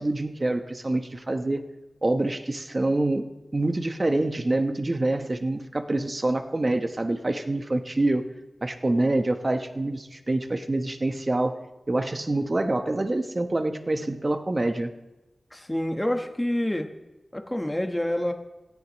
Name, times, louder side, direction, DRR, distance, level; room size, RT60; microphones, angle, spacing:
voice 1, 0.0-1.6 2.0-3.2 3.5-8.3 8.6-11.6 11.9-14.9, right 2 dB, 40° right, 7 dB, 1.1 m, -26 dB
voice 2, 15.5-16.9 17.3-18.3, left 1 dB, 15° left, 5 dB, 1.3 m, -27 dB
17.5 x 14.5 x 3.1 m, 1.1 s
wide cardioid pair, 55°, 0 cm